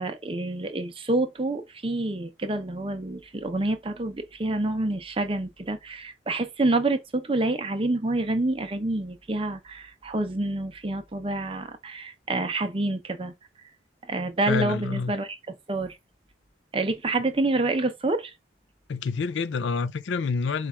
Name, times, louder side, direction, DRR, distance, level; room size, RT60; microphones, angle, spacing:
voice 1, 0.0-13.3 14.1-15.4 15.7-16.0 16.7-18.3, right 2 dB, 30° right, 0.6 m, -27 dB
voice 2, 14.5-15.2 18.9-20.7, left 5 dB, 80° left, 0.4 m, -27 dB
4.6 x 2.4 x 4.1 m
head